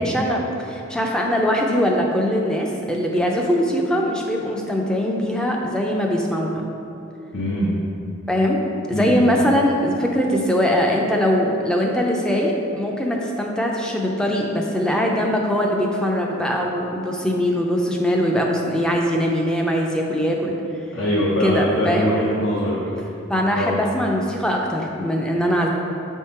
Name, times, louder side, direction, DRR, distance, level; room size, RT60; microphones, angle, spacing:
voice 1, 0.0-6.6 8.3-8.6 8.9-20.5 21.4-22.2 23.3-25.7, equal, 5° left, -1 dB, 0.4 m, -21 dB
voice 2, 7.3-7.7 8.9-9.4 20.9-22.8 23.0-23.1 23.5-23.8, equal, 75° left, -7 dB, 0.9 m, -22 dB
6.2 x 3.6 x 4.2 m, 2.8 s
head